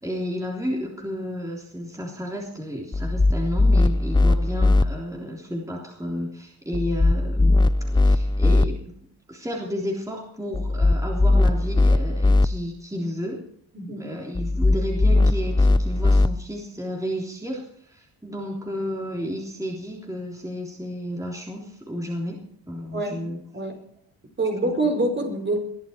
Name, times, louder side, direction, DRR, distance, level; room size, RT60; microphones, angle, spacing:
voice 1, 0.0-13.4 14.0-22.4 22.7-23.4 24.6-24.7, equal, 10° right, -2 dB, 3.4 m, -32 dB
sound 1, 2.9-4.8 6.7-8.7 10.5-12.5 14.3-16.3, left 2 dB, 10° left, 0.5 m, -19 dB
voice 2, 13.7-14.1 22.9-23.2 23.5-23.8 24.4-25.6, right 2 dB, 30° right, 5 dB, 4.6 m, -25 dB
21.5 x 12.0 x 4.5 m, 0.65 s
cardioid pair, 95°, 38 cm